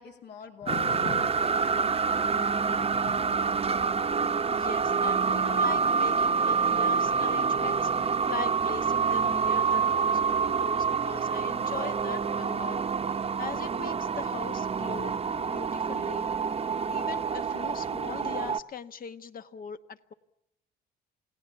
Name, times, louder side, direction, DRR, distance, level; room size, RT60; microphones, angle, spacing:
voice 1, 0.0-3.1 4.0-4.1, left 6 dB, 65° left, 4 dB, 2.7 m, -49 dB
voice 2, 0.6-1.3 2.8-3.0 4.5-12.8 13.1-16.3 16.9-20.1, left 6 dB, 50° left, 11 dB, 1.3 m, -41 dB
sound 1, 0.7-18.6, right 5 dB, 30° right, 0.9 m, -27 dB
28.5 x 18.0 x 7.1 m, 0.82 s
cardioid pair, 90°, 19 cm